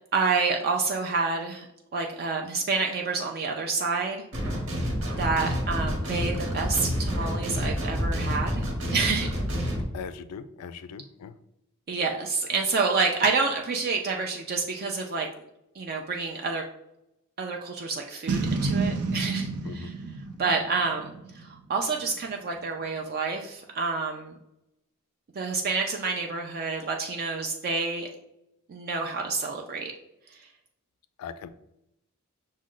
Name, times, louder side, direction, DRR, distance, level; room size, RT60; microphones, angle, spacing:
voice 1, 0.1-1.7 1.9-4.2 5.2-8.7 8.9-9.4 11.9-15.3 15.7-16.6 17.4-19.9 20.4-24.3 25.4-28.1 28.7-29.9 30.4-30.5, right 4 dB, 45° right, 1 dB, 0.4 m, -28 dB
sound 1, 4.3-9.8, equal, 65° right, 1.2 m, -28 dB
voice 2, 9.9-11.3 19.6-19.9 31.2-31.5, left 6 dB, 80° left, 12 dB, 0.3 m, -39 dB
Boom, 18.3-21.6, right 3 dB, 85° right, 0.6 m, -29 dB
6.1 x 2.2 x 3.7 m, 0.84 s
head